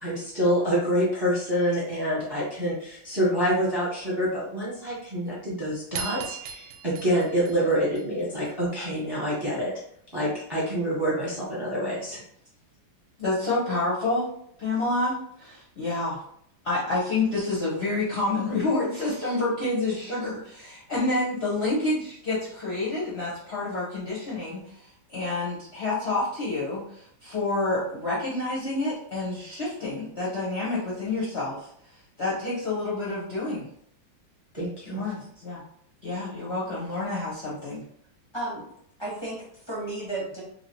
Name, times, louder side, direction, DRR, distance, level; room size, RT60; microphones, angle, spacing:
voice 1, 0.0-9.7 10.1-12.2 34.5-35.0, equal, 15° right, -7 dB, 0.9 m, -27 dB
sound 1, 5.9-8.5, right 6 dB, 75° right, 1.1 m, -38 dB
voice 2, 13.2-14.3 14.6-16.2 16.6-24.7 25.1-31.7 32.2-33.6 34.9-35.6 36.0-37.8, left 2 dB, 45° left, -9 dB, 0.9 m, -28 dB
voice 3, 38.3-38.7 39.0-40.4, right 2 dB, 20° left, -7 dB, 0.8 m, -33 dB
2.9 x 2.7 x 2.9 m, 0.68 s
omnidirectional pair, 2.1 m